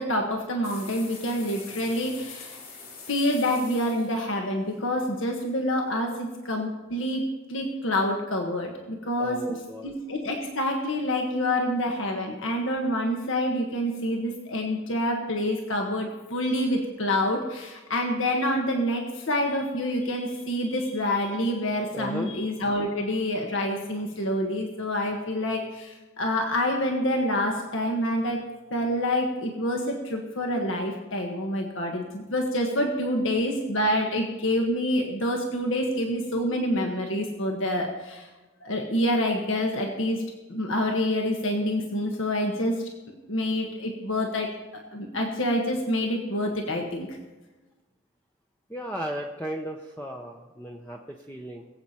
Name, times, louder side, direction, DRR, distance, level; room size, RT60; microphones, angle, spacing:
voice 1, 0.0-2.6 3.1-7.2 7.5-9.4 9.8-28.4 28.7-38.3 38.6-40.2 40.5-42.7 43.3-44.5 44.9-47.2, left 1 dB, 65° left, 2 dB, 1.5 m, -27 dB
sound 1, 0.6-5.6, left 4 dB, 45° left, 3.7 m, -44 dB
voice 2, 9.2-9.9 21.9-22.3 48.7-51.7, equal, 10° left, 0 dB, 0.7 m, -35 dB
22.5 x 8.2 x 4.4 m, 1.2 s
head